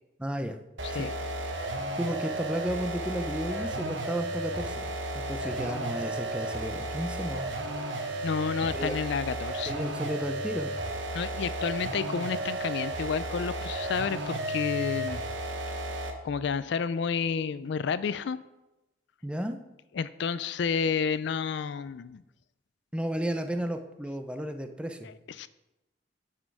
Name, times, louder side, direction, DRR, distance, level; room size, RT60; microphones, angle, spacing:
voice 1, 0.2-0.6 0.9-1.1 1.9-7.5 8.7-8.9 9.7-10.7 19.2-19.6 22.9-25.1, equal, 5° right, 7 dB, 0.6 m, -33 dB
sound 1, 0.8-16.3, right 1 dB, 75° right, 1.2 m, -33 dB
voice 2, 8.2-9.7 11.1-15.2 16.2-18.4 19.9-22.2 25.0-25.5, left 6 dB, 65° left, 15 dB, 0.4 m, -30 dB
9.7 x 6.3 x 4.7 m, 0.98 s
head